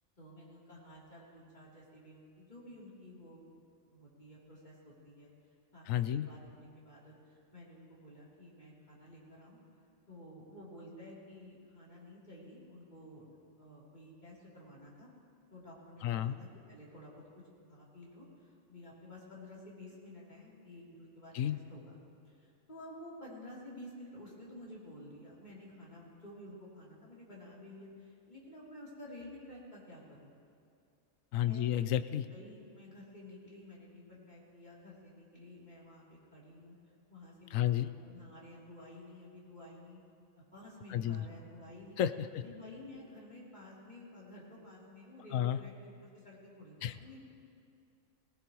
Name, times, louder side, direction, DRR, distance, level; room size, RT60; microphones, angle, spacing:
voice 1, 0.2-3.6 3.9-5.3 5.7-7.1 7.5-9.6 10.1-15.1 15.5-17.2 17.7-21.9 22.2-30.3 31.4-31.8 32.3-36.7 37.1-40.0 40.3-42.0 42.3-47.2, left 1 dB, 35° left, -6 dB, 3.4 m, -52 dB
voice 2, 5.9-6.3 16.0-16.4 21.3-21.6 31.3-32.3 37.5-37.9 40.9-41.2 42.0-42.4 45.3-45.6 46.8-46.9, left 11 dB, 80° left, 12 dB, 1.0 m, -31 dB
19.5 x 18.5 x 3.1 m, 2.4 s
omnidirectional pair, 1.4 m